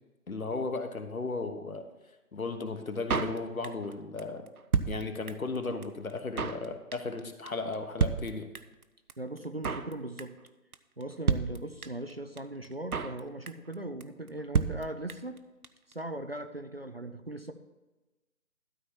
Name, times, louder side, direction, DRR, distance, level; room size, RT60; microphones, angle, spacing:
voice 1, 0.3-1.8 2.3-4.5 4.9-8.5, left 3 dB, 65° left, 6 dB, 1.4 m, -35 dB
Drum kit, 3.1-3.9 4.2-4.3 4.5-5.6 5.8-5.9 6.1-6.6 6.9-7.2 7.5-7.6 7.7-7.8 8.0-8.8 9.1-9.2 9.4-9.9 10.2-10.5 10.7-10.8 11.0-11.1 11.3-12.1 12.4-12.5 12.6-13.2 13.5-13.7 14.0-14.1 14.3-14.4 14.5-15.4 15.6-15.7 15.9-16.0, right 5 dB, 75° right, 0.8 m, -30 dB
voice 2, 9.2-10.4 11.0-15.4 15.9-17.5, right 1 dB, 45° right, 8 dB, 0.6 m, -39 dB
12.5 x 4.3 x 7.0 m, 1.1 s
figure-of-eight pair, 160°, 45 cm